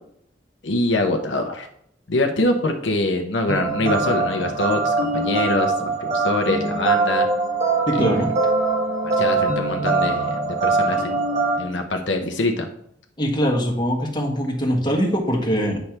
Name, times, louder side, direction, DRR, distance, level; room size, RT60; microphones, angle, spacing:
voice 1, 0.6-1.7 2.1-7.3 8.0-8.1 9.2-11.2 11.6-12.7, left 2 dB, 75° left, 4 dB, 0.9 m, -24 dB
sound 1, 3.5-11.6, right 3 dB, 40° right, 1.6 m, -22 dB
voice 2, 7.9-8.3 13.2-15.8, equal, 25° left, 0 dB, 1.5 m, -22 dB
9.2 x 3.3 x 5.8 m, 0.70 s
head